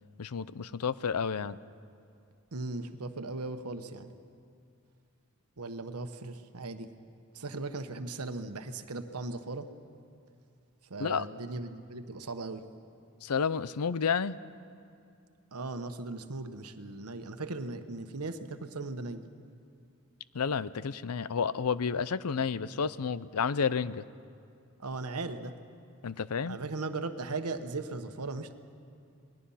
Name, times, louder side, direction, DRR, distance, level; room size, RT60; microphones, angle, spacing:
voice 1, 0.2-1.6 11.0-11.2 13.2-14.4 20.3-24.0 26.0-26.6, left 6 dB, 90° left, 17 dB, 0.6 m, -31 dB
voice 2, 2.5-4.1 5.6-6.9 7.3-9.7 10.9-12.6 15.5-19.2 24.8-25.5 26.5-28.5, right 3 dB, 85° right, 8 dB, 1.2 m, -38 dB
27.5 x 20.5 x 5.7 m, 2.5 s
head